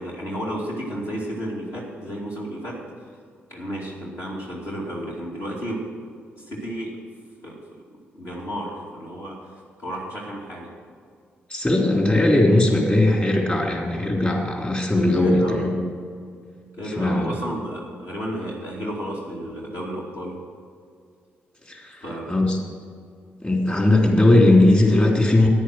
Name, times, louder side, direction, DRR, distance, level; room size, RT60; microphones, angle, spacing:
voice 1, 0.0-2.8 3.5-5.8 6.4-6.9 7.4-7.6 8.1-9.4 9.8-10.7 15.0-15.6 16.8-20.3 22.0-22.3, equal, 60° left, -4 dB, 2.5 m, -32 dB
voice 2, 11.5-15.7 16.8-17.3 21.7-22.0 22.3-22.6 23.4-25.5, left 1 dB, 25° left, 0 dB, 3.4 m, -18 dB
10.0 x 9.8 x 6.3 m, 2.1 s
hypercardioid pair, 40°, 5 cm